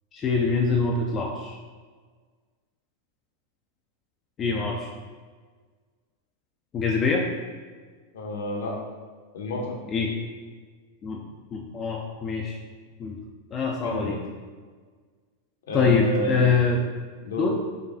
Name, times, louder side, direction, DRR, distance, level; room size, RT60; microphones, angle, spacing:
voice 1, 0.1-1.6 4.4-4.9 6.7-7.3 9.9-10.1 11.0-11.2 11.5-12.6 13.0-13.2 13.5-14.2 15.7-16.8 17.4-17.5, left 4 dB, 25° left, -1 dB, 0.3 m, -24 dB
voice 2, 8.1-8.8 9.3-9.8 13.8-14.2 15.7-16.5 17.2-17.5, left 1 dB, 60° left, -1 dB, 0.7 m, -30 dB
4.8 x 2.3 x 2.5 m, 1.5 s
figure-of-eight pair, 90°, 0 cm